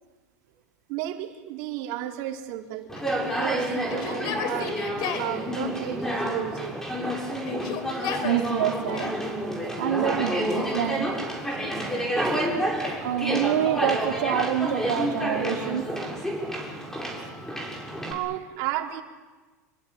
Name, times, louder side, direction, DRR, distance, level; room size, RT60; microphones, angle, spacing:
voice 1, 0.9-2.9 3.2-4.8 5.2-6.8 18.1-19.0, right 13 dB, 60° right, 2 dB, 4.1 m, -33 dB
Conversation, 2.9-18.1, right 1 dB, 5° left, 6.9 m, -29 dB
Yell, 3.0-5.3 6.2-7.0 7.4-9.2 10.0-10.6 11.3-13.1 14.5-15.4 16.2-17.9, left 6 dB, 55° left, 4.2 m, -38 dB
voice 2, 8.2-9.1 9.8-11.0 13.0-15.8, right 9 dB, 85° right, 1 dB, 3.0 m, -26 dB
27.5 x 22.5 x 9.3 m, 1.3 s
hypercardioid pair, 105°, 9 cm